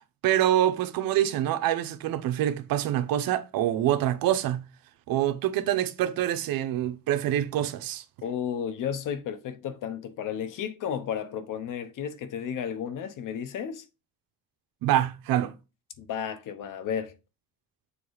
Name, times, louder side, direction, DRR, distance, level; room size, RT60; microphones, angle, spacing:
voice 1, 0.2-4.6 5.1-8.0 14.8-15.5, right 12 dB, 70° right, 0.9 m, -25 dB
voice 2, 8.2-13.8 16.0-17.1, left 8 dB, 60° left, 1.1 m, -33 dB
6.8 x 3.1 x 4.8 m
cardioid pair, 140°, 36 cm